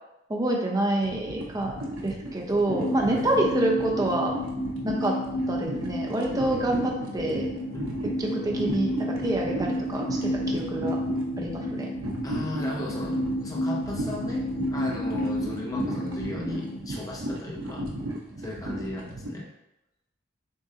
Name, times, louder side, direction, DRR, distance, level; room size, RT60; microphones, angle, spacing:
voice 1, 0.3-1.7 2.0-4.3 4.8-5.2 5.5-7.5 8.0-11.0 11.4-11.9, right 1 dB, 20° right, 0 dB, 0.6 m, -27 dB
sound 1, 1.0-19.3, right 1 dB, 90° right, 0.7 m, -35 dB
sound 2, 2.7-16.8, equal, 85° left, 0.5 m, -31 dB
voice 2, 12.2-17.9 18.4-19.5, left 2 dB, 20° left, -3 dB, 0.7 m, -36 dB
6.2 x 2.6 x 2.7 m, 0.89 s
head